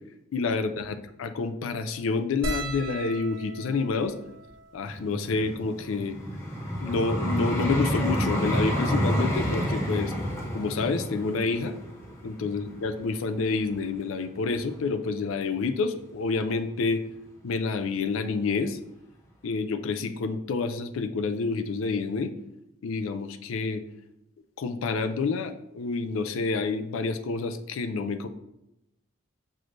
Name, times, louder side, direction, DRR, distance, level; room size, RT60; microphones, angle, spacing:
voice 1, 0.3-4.1 4.7-6.2 6.8-10.1 10.5-11.7 12.2-17.1 17.4-18.8 19.4-22.3 22.8-23.8 24.6-28.3, left 4 dB, 80° left, 10 dB, 0.4 m, -28 dB
sound 1, 2.4-7.0 7.8-7.9 8.1-8.3 9.5-9.8 11.2-11.3 11.5-11.7, right 2 dB, 80° right, 1.0 m, -40 dB
Vehicle, 4.9-13.9 14.6-14.7, equal, 15° left, 0.6 m, -29 dB
6.0 x 3.1 x 2.5 m, 0.86 s
head